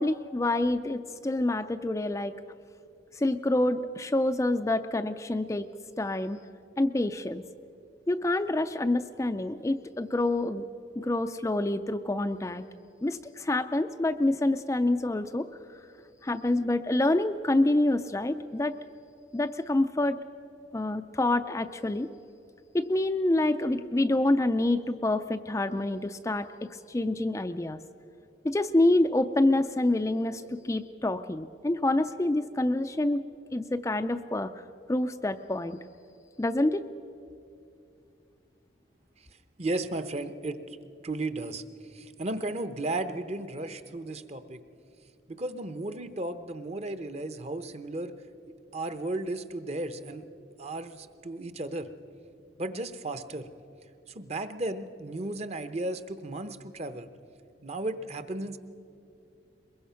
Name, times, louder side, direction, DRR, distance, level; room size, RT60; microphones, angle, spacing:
voice 1, 0.0-2.3 3.1-5.7 6.0-6.4 6.8-7.4 8.1-10.6 11.0-12.7 13.0-15.5 16.2-18.8 19.3-20.2 20.7-22.1 22.7-27.8 28.4-33.2 33.5-34.5 34.9-35.8 36.4-36.9, left 2 dB, 15° left, 8 dB, 0.4 m, -27 dB
voice 2, 39.6-40.6 41.0-41.6 41.9-44.6 45.3-48.1 48.7-50.2 50.6-51.9 52.6-53.5 54.1-57.1 57.6-58.6, right 2 dB, 35° right, 11 dB, 0.8 m, -34 dB
22.5 x 22.0 x 5.7 m, 2.5 s
head